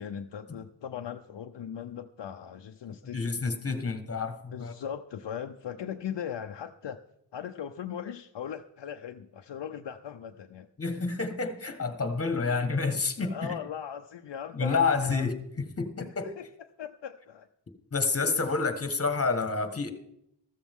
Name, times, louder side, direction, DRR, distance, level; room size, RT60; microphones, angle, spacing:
voice 1, 0.0-3.4 4.5-7.0 7.3-10.7 13.2-15.3 16.0-16.5 16.8-17.5, left 8 dB, 70° left, 6 dB, 0.7 m, -39 dB
voice 2, 3.1-4.7 10.8-13.6 14.5-15.3 15.8-15.9 16.2-16.3 17.9-19.9, left 4 dB, 30° left, 8 dB, 1.5 m, -28 dB
14.5 x 13.0 x 3.6 m, 0.77 s
wide cardioid pair, 140°, 45 cm